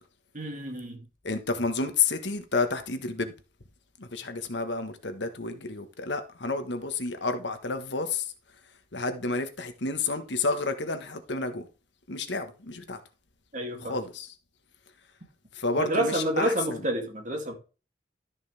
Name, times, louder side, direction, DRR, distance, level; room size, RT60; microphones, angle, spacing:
voice 1, 0.3-1.0 13.5-14.0 15.8-17.6, right 1 dB, 45° right, 2.8 m, -29 dB
voice 2, 1.2-3.3 4.0-8.2 8.9-11.7 12.1-13.0 13.9-14.3 15.6-16.8, left 3 dB, 70° left, 1.5 m, -30 dB
13.0 x 6.3 x 3.5 m
head